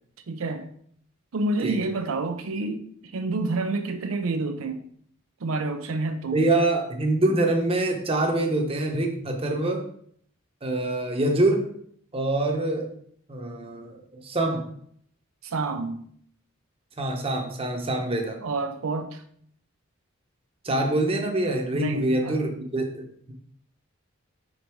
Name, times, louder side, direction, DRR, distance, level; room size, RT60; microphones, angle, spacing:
voice 1, 0.3-0.6 1.3-2.8 3.1-4.8 5.4-6.5 15.4-16.0 18.4-19.2 21.7-22.4, right 3 dB, 85° right, 7 dB, 0.5 m, -28 dB
voice 2, 6.3-9.8 10.6-11.7 12.1-12.9 13.3-14.7 17.0-18.4 20.6-23.3, right 2 dB, 30° right, 2 dB, 0.9 m, -25 dB
5.2 x 4.0 x 4.5 m, 0.64 s
head